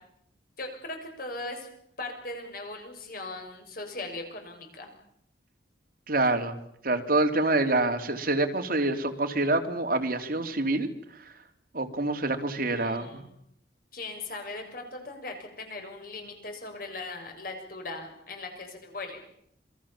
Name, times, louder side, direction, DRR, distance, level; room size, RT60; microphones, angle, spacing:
voice 1, 0.6-1.7 2.0-4.9 12.6-13.4 13.9-19.2, left 2 dB, 55° left, 5 dB, 7.0 m, -39 dB
voice 2, 6.1-6.5 6.8-10.9 11.7-13.2, right 2 dB, 55° right, 5 dB, 3.2 m, -26 dB
28.5 x 22.5 x 7.4 m, 0.72 s
head